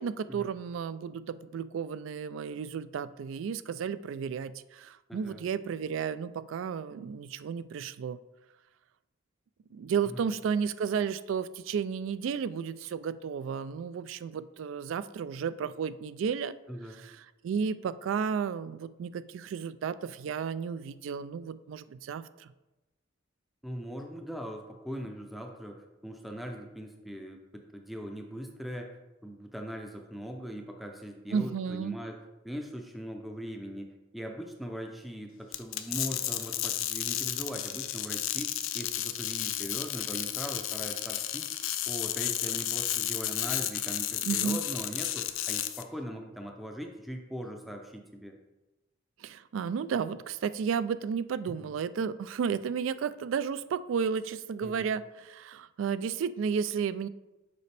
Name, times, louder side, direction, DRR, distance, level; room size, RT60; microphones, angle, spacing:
voice 1, 0.0-8.2 9.7-16.5 17.0-17.2 17.4-22.5 31.3-32.0 44.2-44.6 49.2-57.1, right 6 dB, 75° right, 15 dB, 0.3 m, -33 dB
voice 2, 5.1-5.4 10.0-10.3 16.7-17.1 23.6-28.9 29.2-32.2 32.4-41.5 41.9-48.4 51.5-51.7 54.6-54.8, equal, ahead, 3 dB, 0.5 m, -40 dB
sound 1, 35.5-45.8, left 12 dB, 85° left, 0.5 m, -32 dB
6.8 x 5.0 x 3.3 m, 1.0 s
head